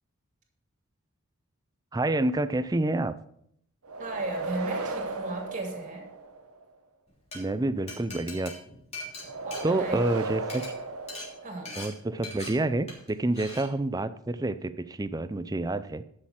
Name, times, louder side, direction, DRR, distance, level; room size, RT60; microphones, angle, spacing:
voice 1, 1.9-3.1 7.3-8.5 9.6-10.6 11.8-16.0, right 2 dB, 15° right, 13 dB, 0.4 m, -28 dB
sound 1, 3.8-6.6 9.2-11.9, right 3 dB, 80° right, 1.1 m, -35 dB
voice 2, 4.0-6.1 9.4-10.1 11.4-11.8, right 2 dB, 35° right, 2 dB, 2.6 m, -35 dB
Glass, 7.1-7.4 7.9-10.2 10.4-10.7 11.1-11.3 11.7-11.9 12.2-12.5 12.9-13.1 13.4-13.6, left 2 dB, 30° left, 3.2 m, -40 dB
11.5 x 6.7 x 5.7 m, 0.71 s
head